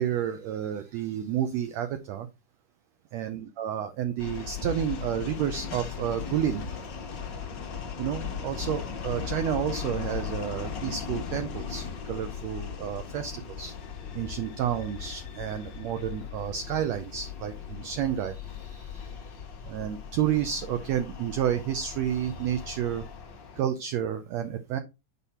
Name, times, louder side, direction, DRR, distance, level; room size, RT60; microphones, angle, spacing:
voice 1, 0.0-2.3 3.1-6.9 8.0-13.7 14.1-19.3 19.6-23.0 23.6-24.8, right 10 dB, 80° right, 8 dB, 1.5 m, -30 dB
sound 1, 4.2-23.6, left 6 dB, 90° left, 0.9 m, -38 dB
8.3 x 5.5 x 4.3 m, 0.26 s
omnidirectional pair, 3.8 m